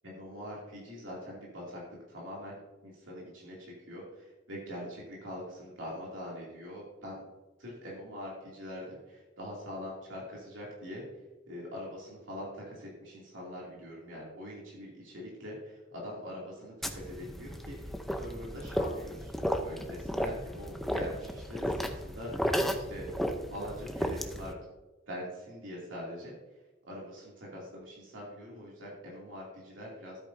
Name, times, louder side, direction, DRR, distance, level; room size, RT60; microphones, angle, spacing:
voice 1, 0.0-1.8 2.1-7.2 7.6-11.0 11.5-22.5 22.7-23.2 23.5-24.5 25.1-26.3 26.9-30.2, equal, 85° right, -5 dB, 2.7 m, -43 dB
sound 1, 16.8-24.5, equal, ahead, 0.7 m, -34 dB
13.0 x 8.5 x 2.7 m, 1.1 s
head